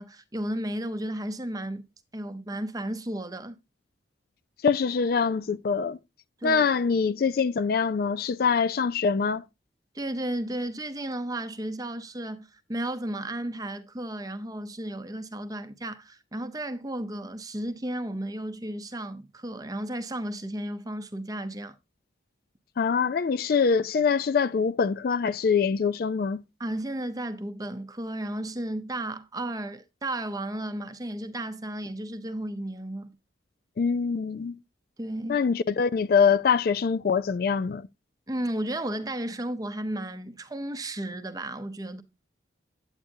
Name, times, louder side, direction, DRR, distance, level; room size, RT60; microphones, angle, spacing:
voice 1, 0.0-1.8 2.1-3.6 6.4-6.6 9.9-21.7 26.6-33.1 35.0-35.4 38.3-42.0, right 1 dB, 20° right, 0.7 m, -33 dB
voice 2, 4.6-6.0 6.4-9.4 22.8-26.4 33.8-34.6 35.3-37.9, left 5 dB, 50° left, 0.3 m, -24 dB
8.8 x 8.7 x 2.7 m
head